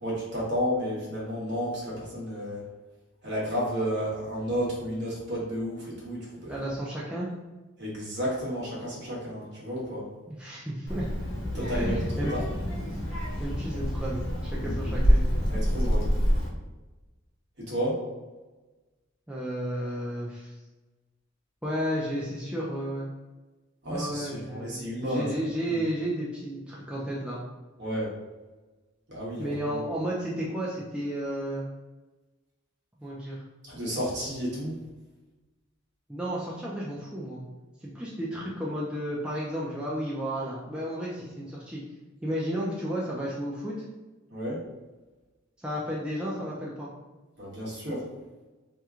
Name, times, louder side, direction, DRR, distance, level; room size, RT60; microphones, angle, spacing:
voice 1, 0.0-2.6 3.2-6.5 7.8-10.1 11.5-11.9 12.3-12.4 14.6-14.9 15.5-16.1 17.6-18.0 23.8-25.3 27.8-28.1 29.1-29.5 33.6-34.8 44.3-44.6 47.4-48.1, equal, 55° right, -5 dB, 1.2 m, -32 dB
voice 2, 6.5-7.3 10.3-11.1 11.7-12.3 13.4-14.2 14.5-15.3 19.3-20.5 21.6-23.1 23.9-27.4 29.4-31.6 33.0-33.4 36.1-37.4 37.8-41.8 42.2-43.8 45.6-46.9, equal, 5° right, -6 dB, 0.4 m, -32 dB
Child speech kid speaking, 10.9-16.5, equal, 75° left, 1.1 m, -27 dB
2.9 x 2.2 x 3.6 m, 1.2 s
head